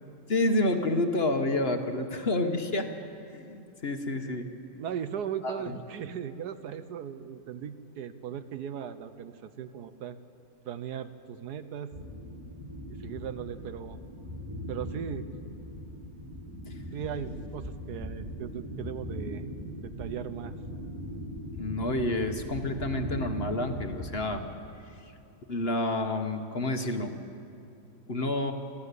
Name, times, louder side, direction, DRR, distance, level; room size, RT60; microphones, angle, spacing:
voice 1, 0.3-2.9 3.3-4.5 5.4-5.8 16.7-16.8 21.6-24.4 24.9-25.0 25.5-27.1 28.1-28.5, left 2 dB, 40° left, 6 dB, 1.1 m, -29 dB
voice 2, 4.8-10.2 10.6-11.9 13.0-14.0 14.7-15.3 16.9-19.4 19.8-20.5, right 9 dB, 75° right, 12 dB, 1.3 m, -38 dB
sound 1, 11.9-24.4, equal, 25° right, 2.8 m, -39 dB
24.5 x 14.5 x 8.2 m, 2.6 s
omnidirectional pair, 1.8 m